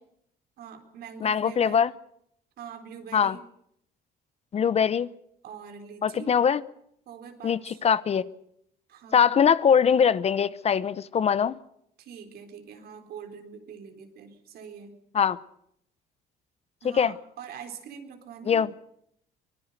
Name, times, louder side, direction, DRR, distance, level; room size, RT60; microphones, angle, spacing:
voice 1, 0.6-1.8 2.6-3.4 5.4-6.3 7.1-7.8 8.9-9.3 12.0-15.0 16.8-18.7, right 7 dB, 65° right, 4.0 m, -44 dB
voice 2, 1.2-1.9 3.1-3.4 4.5-5.1 6.0-6.6 7.4-8.3 9.1-11.6 15.1-15.4 16.8-17.1 18.5-18.7, left 7 dB, 40° left, 0.8 m, -22 dB
24.0 x 20.5 x 6.7 m
cardioid pair, 110°, 17 cm